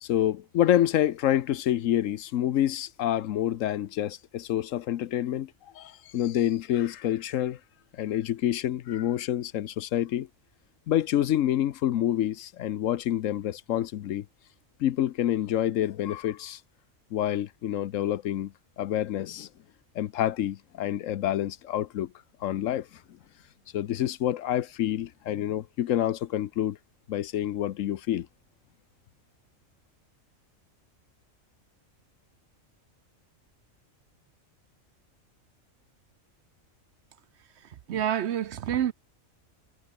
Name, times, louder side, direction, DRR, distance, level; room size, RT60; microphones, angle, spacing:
voice 1, 0.0-7.6 7.9-10.3 10.9-14.2 14.8-16.6 17.1-19.5 19.9-22.1 22.4-22.9 23.7-26.8 27.1-28.3, left 12 dB, 75° left, 1.0 m, -27 dB
voice 2, 37.9-38.9, right 10 dB, 65° right, 0.9 m, -27 dB
omnidirectional pair, 1.4 m